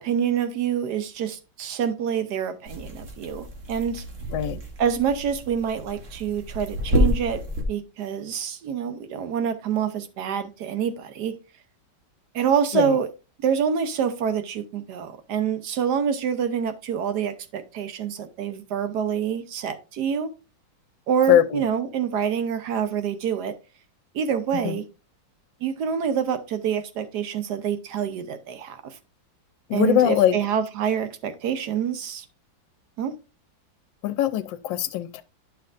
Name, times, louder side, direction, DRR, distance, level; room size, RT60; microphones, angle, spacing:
voice 1, 0.0-4.0 4.8-7.4 7.7-11.4 12.3-13.1 13.4-20.3 21.1-23.5 24.1-24.8 25.6-29.0 29.7-32.2 33.0-33.1, right 8 dB, 65° right, 1.2 m, -26 dB
sound 1, 2.7-7.6, left 1 dB, 45° right, 1.5 m, -29 dB
voice 2, 21.3-21.6 24.6-24.8 29.7-30.4 34.0-35.2, left 11 dB, 75° left, 1.2 m, -21 dB
10.0 x 5.7 x 2.5 m
omnidirectional pair, 2.1 m